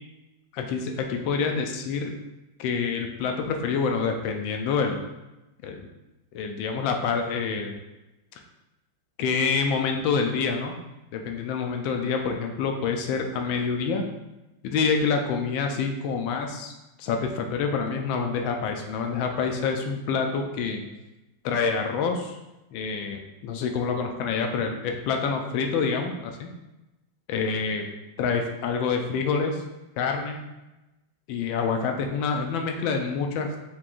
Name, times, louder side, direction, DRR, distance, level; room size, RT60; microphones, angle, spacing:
voice 1, 0.5-2.1 2.6-5.0 5.6-5.9 6.3-7.7 9.2-10.7 11.1-14.0 14.6-16.7 17.0-20.8 21.4-22.4 22.7-26.5 27.3-27.9 28.2-29.6 30.0-30.4 31.3-33.5, left 5 dB, 85° left, 3 dB, 1.3 m, -27 dB
4.8 x 3.6 x 2.5 m, 1.0 s
omnidirectional pair, 2.1 m